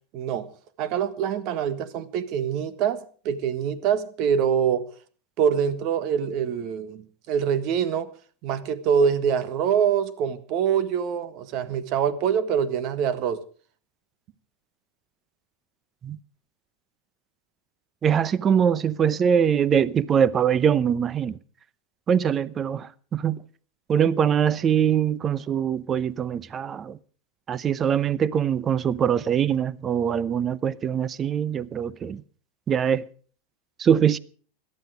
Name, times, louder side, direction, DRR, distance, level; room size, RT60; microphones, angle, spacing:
voice 1, 0.1-0.5 0.8-4.8 5.4-8.1 8.4-13.4, right 7 dB, 50° right, 1.6 m, -25 dB
voice 2, 18.0-21.4 22.1-23.4 23.9-27.0 27.5-32.2 32.7-33.0 33.8-34.2, right 8 dB, 30° right, 0.8 m, -23 dB
17.5 x 12.0 x 5.0 m
hypercardioid pair, 110°, 0 cm